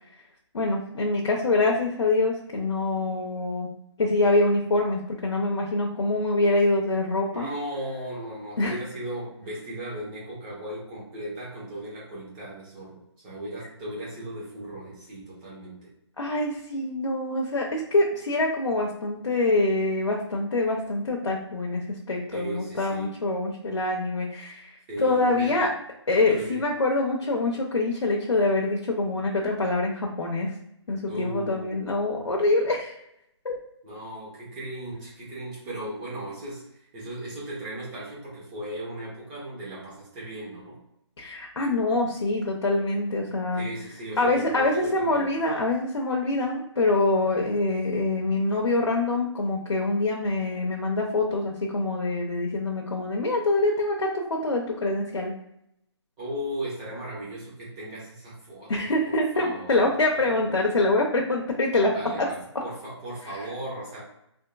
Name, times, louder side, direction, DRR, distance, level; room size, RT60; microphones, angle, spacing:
voice 1, 0.5-3.7 4.0-7.5 8.6-8.8 16.2-25.7 26.1-30.5 30.9-32.9 33.4-33.6 41.2-43.7 44.2-55.3 58.7-62.3 62.5-62.6 63.3-63.4, left 2 dB, 85° left, -1 dB, 0.7 m, -25 dB
voice 2, 7.3-15.9 22.3-23.1 24.9-25.8 26.3-26.6 31.1-31.9 33.8-40.8 43.6-45.3 56.2-60.5 61.9-64.0, right 1 dB, 15° right, -6 dB, 1.0 m, -37 dB
3.6 x 2.6 x 2.4 m, 0.77 s
hypercardioid pair, 160°, 15 cm